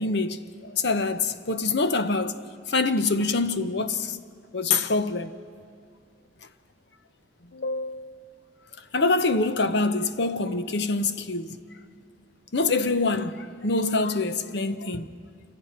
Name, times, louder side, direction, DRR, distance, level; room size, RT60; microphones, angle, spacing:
voice 1, 0.0-2.4 2.7-4.2 4.5-5.3 7.5-8.3 8.9-11.6 12.5-15.2, left 3 dB, 60° left, 0.9 m, -25 dB
28.5 x 26.0 x 4.5 m
head